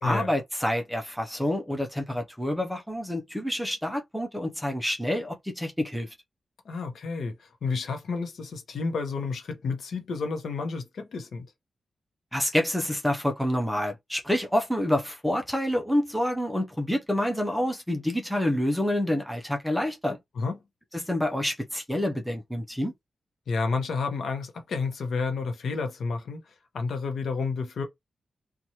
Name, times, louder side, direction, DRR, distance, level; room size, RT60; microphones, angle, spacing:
voice 1, 0.0-6.1 12.3-20.2 20.9-22.9, left 1 dB, ahead, 0.5 m, -28 dB
voice 2, 6.6-11.5 20.4-20.6 23.5-26.4 26.7-27.8, left 4 dB, 70° left, 0.7 m, -30 dB
2.9 x 2.3 x 2.7 m
wide cardioid pair, 155°, 0 cm